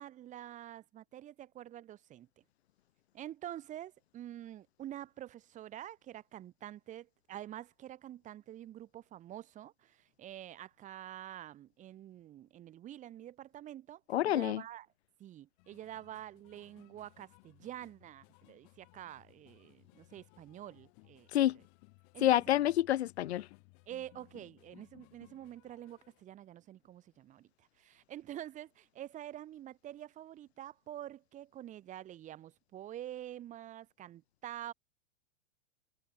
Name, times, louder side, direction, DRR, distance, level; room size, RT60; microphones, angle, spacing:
voice 1, 0.0-2.4 3.1-14.9 15.2-21.3 21.5-21.6 22.1-22.4 23.9-34.7, right 12 dB, 25° right, 1.1 m, -47 dB
voice 2, 14.1-14.6 21.3-21.6 22.2-23.5, left 13 dB, 85° left, 0.8 m, -28 dB
sound 1, 15.6-26.2, left 40 dB or more, 45° left, 4.0 m, -62 dB
supercardioid pair, 140°, 32 cm